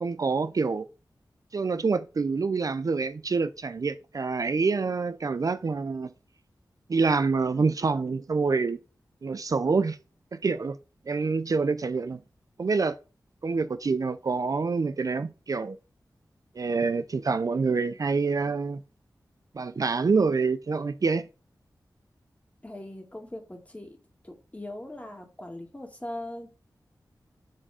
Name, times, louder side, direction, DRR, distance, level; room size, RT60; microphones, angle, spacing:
voice 1, 0.0-0.9 1.5-6.1 6.9-8.8 9.2-10.0 10.3-10.8 11.1-12.2 12.6-13.0 13.4-15.8 16.6-18.8 19.5-21.3, right 4 dB, 50° right, 0.4 m, -26 dB
voice 2, 22.6-24.0 24.2-26.5, left 1 dB, 20° left, 2.0 m, -40 dB
7.7 x 3.6 x 4.9 m
wide cardioid pair, 60°, 7 cm